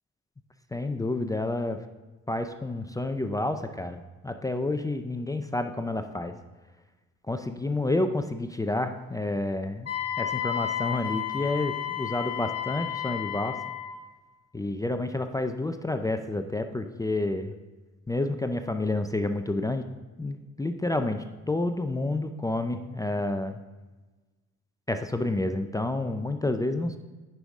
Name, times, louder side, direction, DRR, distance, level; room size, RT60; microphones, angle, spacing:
voice 1, 0.7-1.8 2.3-6.3 7.3-9.9 10.2-13.6 14.5-17.5 18.1-19.9 20.2-23.6 24.9-27.0, left 2 dB, 10° left, 7 dB, 0.4 m, -29 dB
Wind instrument woodwind instrument, 9.9-14.0, left 10 dB, 55° left, 1.4 m, -32 dB
9.7 x 5.5 x 3.5 m, 1.2 s
cardioid pair, 90°, 30 cm